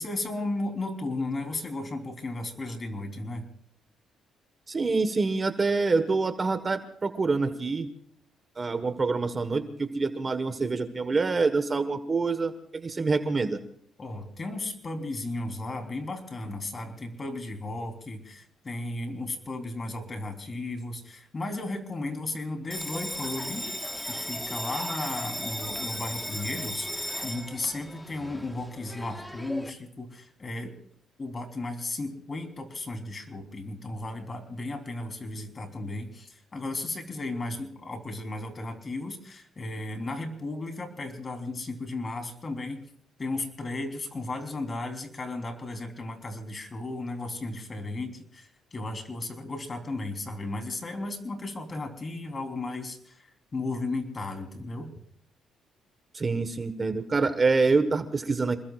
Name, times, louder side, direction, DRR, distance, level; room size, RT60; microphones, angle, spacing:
voice 1, 0.0-3.5 14.0-23.7 24.1-30.7 31.2-42.8 43.2-54.9, left 2 dB, 30° left, 5 dB, 3.7 m, -35 dB
voice 2, 4.7-7.9 8.6-13.6 56.1-58.6, right 4 dB, 30° right, 9 dB, 1.4 m, -26 dB
Bell, 22.7-29.7, left 1 dB, 5° left, 1.4 m, -36 dB
28.0 x 21.0 x 2.5 m, 0.62 s
cardioid pair, 105°, 0 cm